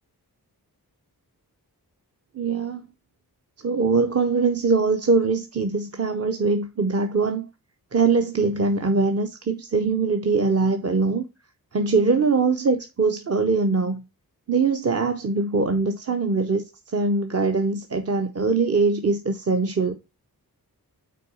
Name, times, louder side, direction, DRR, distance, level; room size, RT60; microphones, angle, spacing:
voice 1, 2.3-2.9 3.6-7.5 7.9-11.2 11.7-14.0 14.5-16.6 16.9-20.0, right 4 dB, 40° right, 0.7 m, -22 dB
5.9 x 3.9 x 6.0 m
wide cardioid pair, 70°, 38 cm